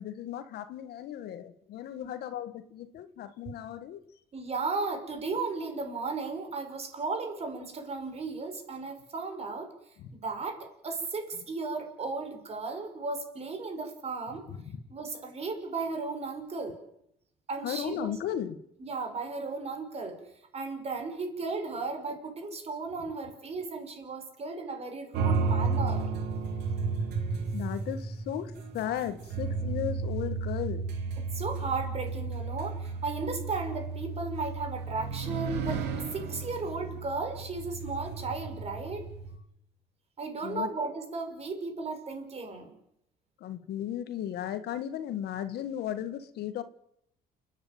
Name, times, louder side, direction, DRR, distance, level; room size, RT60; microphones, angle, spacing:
voice 1, 0.0-4.0 10.0-10.1 14.5-14.8 17.6-18.6 25.2-25.4 27.5-30.8 40.4-40.7 43.4-46.6, left 10 dB, 75° left, 1.6 m, -36 dB
voice 2, 4.3-9.7 10.1-14.4 14.9-16.8 17.5-18.1 18.8-20.2 20.5-26.1 31.2-39.1 40.2-42.7, right 3 dB, 40° right, 5.6 m, -35 dB
sound 1, 25.1-39.3, right 4 dB, 80° right, 3.2 m, -33 dB
30.0 x 10.0 x 9.3 m
cardioid pair, 110°, 17 cm